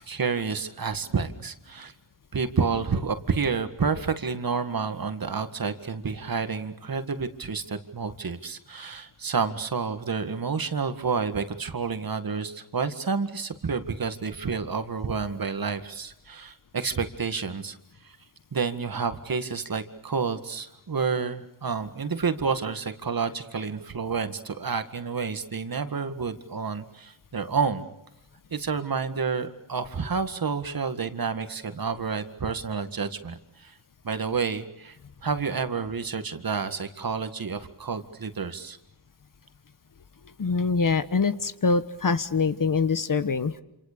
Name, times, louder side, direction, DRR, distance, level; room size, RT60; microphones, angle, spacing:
voice 1, 0.0-1.9 2.3-17.8 18.0-18.2 18.5-27.9 28.5-33.7 34.0-35.0 35.2-38.8, right 5 dB, 45° right, 9 dB, 2.0 m, -29 dB
voice 2, 40.4-43.6, left 4 dB, 45° left, 12 dB, 1.3 m, -24 dB
27.5 x 27.5 x 6.9 m, 0.87 s
cardioid pair, 85°, 47 cm